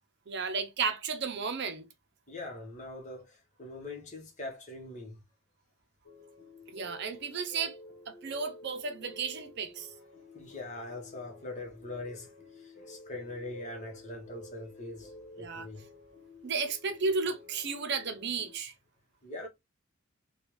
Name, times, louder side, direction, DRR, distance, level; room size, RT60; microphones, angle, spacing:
voice 1, 0.3-1.8 6.7-7.8 8.1-9.9 15.4-15.6 16.4-18.7, right 4 dB, 55° right, 0.6 m, -33 dB
voice 2, 2.3-5.2 10.3-15.8 19.2-19.5, left 2 dB, 35° left, 1.1 m, -42 dB
sound 1, 6.0-18.6, left 2 dB, 65° left, 1.0 m, -52 dB
3.4 x 2.3 x 3.0 m
head